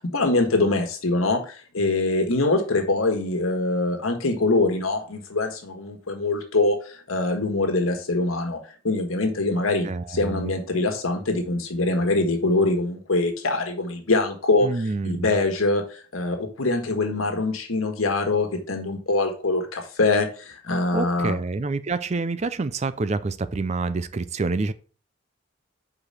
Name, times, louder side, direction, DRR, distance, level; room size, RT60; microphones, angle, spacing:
voice 1, 0.1-8.6 8.8-21.4, left 2 dB, 90° left, 4 dB, 1.5 m, -24 dB
voice 2, 9.8-10.6 14.6-15.4 20.9-24.7, right 3 dB, 35° right, 14 dB, 0.4 m, -27 dB
4.9 x 4.9 x 5.5 m, 0.39 s
head